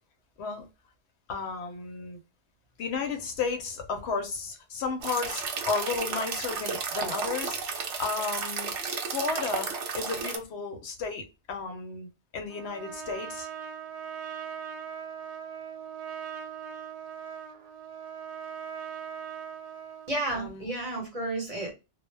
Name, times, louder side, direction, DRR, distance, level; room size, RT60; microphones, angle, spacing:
voice 1, 1.3-2.2 2.8-8.7 9.1-13.5 20.3-20.7, left 5 dB, 70° left, 0.8 m, -33 dB
sound 1, 5.0-10.4, right 5 dB, 85° right, 0.9 m, -33 dB
Trumpet, 12.5-20.1, right 7 dB, 55° right, 0.4 m, -40 dB
voice 2, 20.1-21.7, right 2 dB, 35° right, 0.8 m, -32 dB
2.1 x 2.1 x 3.1 m
omnidirectional pair, 1.2 m